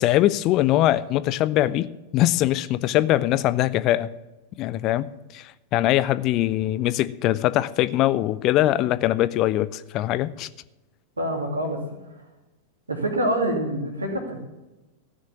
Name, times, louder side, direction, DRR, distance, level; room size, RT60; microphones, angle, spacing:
voice 1, 0.0-4.1 4.6-5.1 5.3-10.5, left 14 dB, 40° left, 16 dB, 0.5 m, -22 dB
voice 2, 11.2-11.8 12.9-14.4, right 1 dB, 75° right, 2 dB, 2.6 m, -26 dB
14.5 x 6.4 x 7.1 m, 1.0 s
figure-of-eight pair, 90°, 0 cm